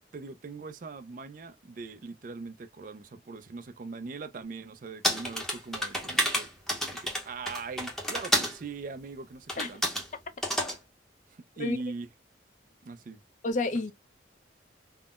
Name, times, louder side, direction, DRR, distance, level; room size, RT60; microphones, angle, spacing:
voice 1, 0.1-9.8 11.3-12.1 12.8-13.2 13.7-13.8, right 4 dB, 45° right, 0.3 m, -41 dB
sound 1, 5.0-8.6 9.5-10.1 10.4-10.8, equal, ahead, 0.7 m, -30 dB
voice 2, 13.4-13.9, left 2 dB, 40° left, 0.4 m, -29 dB
3.6 x 2.0 x 2.3 m
head